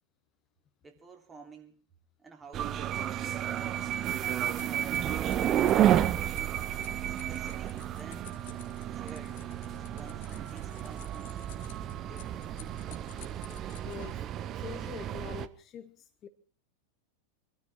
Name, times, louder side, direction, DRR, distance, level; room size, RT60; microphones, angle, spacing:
voice 1, 0.8-1.8 2.2-2.9 4.3-5.0 7.1-8.4 8.9-9.4 9.7-11.6 12.0-12.3, right 4 dB, 15° right, 3 dB, 3.0 m, -52 dB
sound 1, 2.5-15.5, right 11 dB, 30° right, 0.8 m, -31 dB
sound 2, 4.3-14.1, left 9 dB, 55° left, 1.5 m, -53 dB
voice 2, 13.8-14.2 14.5-16.3, left 8 dB, 30° left, 9 dB, 1.1 m, -44 dB
24.0 x 13.0 x 4.4 m, 0.40 s
figure-of-eight pair, 90°, 0 cm